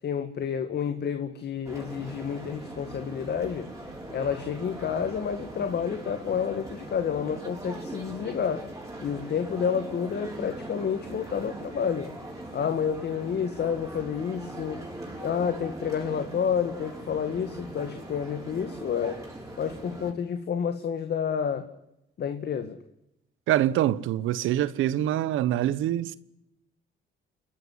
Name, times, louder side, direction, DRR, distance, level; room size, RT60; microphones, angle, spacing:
voice 1, 0.0-3.7 4.1-8.6 9.0-12.1 12.5-14.8 15.2-19.2 19.6-21.7 22.2-22.8, left 7 dB, 55° left, 2.0 m, -29 dB
sound 1, 1.6-20.1, right 1 dB, 15° right, 6.8 m, -41 dB
voice 2, 23.5-26.2, right 12 dB, 85° right, 1.1 m, -25 dB
28.5 x 12.0 x 9.8 m
cardioid pair, 90°, 20 cm